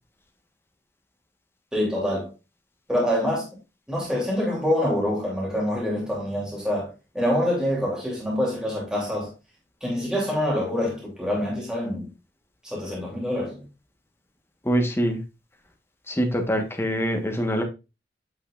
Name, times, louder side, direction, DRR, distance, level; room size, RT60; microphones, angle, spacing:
voice 1, 1.7-2.3 2.9-3.5 3.9-9.3 9.8-12.1 12.6-13.7, left 1 dB, 5° right, 3.0 m, -26 dB
voice 2, 14.6-15.2 16.1-17.6, equal, 15° left, 1.3 m, -24 dB
8.6 x 5.6 x 2.5 m
head